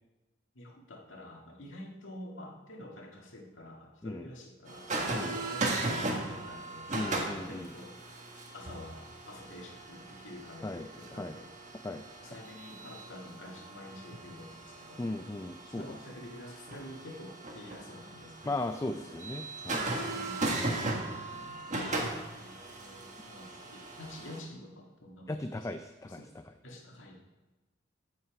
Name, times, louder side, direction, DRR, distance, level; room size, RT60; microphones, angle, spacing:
voice 1, 0.5-7.1 7.5-7.9 8.5-11.5 12.2-15.3 15.7-18.6 18.8-19.2 20.1-20.7 22.4-25.7 26.1-26.3 26.6-27.2, left 1 dB, 80° left, 0 dB, 1.9 m, -48 dB
sound 1, 4.7-24.4, right 2 dB, 40° right, 1.6 m, -38 dB
voice 2, 6.9-7.7 10.6-10.9 11.2-11.4 11.8-12.0 15.0-15.8 18.4-19.9 25.3-26.2, left 2 dB, 15° left, 8 dB, 0.3 m, -37 dB
15.0 x 5.7 x 4.8 m, 1.1 s
head